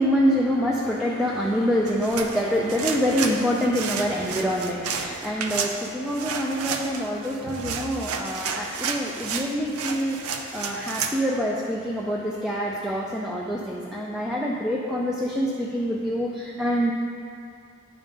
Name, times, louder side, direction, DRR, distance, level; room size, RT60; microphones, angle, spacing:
voice 1, 0.0-16.9, equal, 5° right, -4 dB, 0.4 m, -26 dB
sound 1, 1.9-11.2, right 6 dB, 70° right, 0.5 m, -32 dB
10.0 x 3.7 x 5.1 m, 2.5 s
head